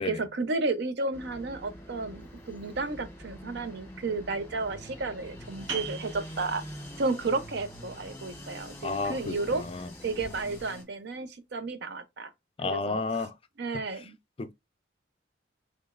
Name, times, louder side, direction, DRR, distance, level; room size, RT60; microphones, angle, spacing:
voice 1, 0.0-6.6 7.0-9.6 10.0-12.3 12.6-13.3 13.6-14.2, right 3 dB, 60° right, 0.6 m, -32 dB
sound 1, 1.1-10.8, equal, 10° left, 1.2 m, -45 dB
sound 2, 5.7-11.0, right 6 dB, 85° right, 1.6 m, -45 dB
voice 2, 8.8-9.9 12.6-13.3 14.4-14.5, left 4 dB, 30° left, 0.4 m, -32 dB
3.8 x 3.2 x 2.5 m
head